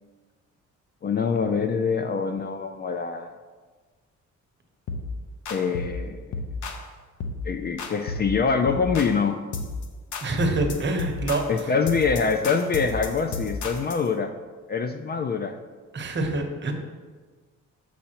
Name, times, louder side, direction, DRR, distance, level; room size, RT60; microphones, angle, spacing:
voice 1, 1.0-3.3 5.5-6.2 7.4-9.4 11.5-14.3 14.7-15.6, left 5 dB, 35° left, 7 dB, 0.4 m, -25 dB
sound 1, 4.9-5.1 5.5-6.0 6.3-6.9 7.2-7.4 7.8-8.3 8.7-9.2 9.5-9.9 10.1-14.1, left 3 dB, 75° left, 0.8 m, -33 dB
voice 2, 10.2-11.7 15.9-16.7, right 2 dB, 35° right, 3 dB, 1.0 m, -26 dB
7.4 x 5.6 x 2.9 m, 1.4 s
cardioid pair, 90°, 30 cm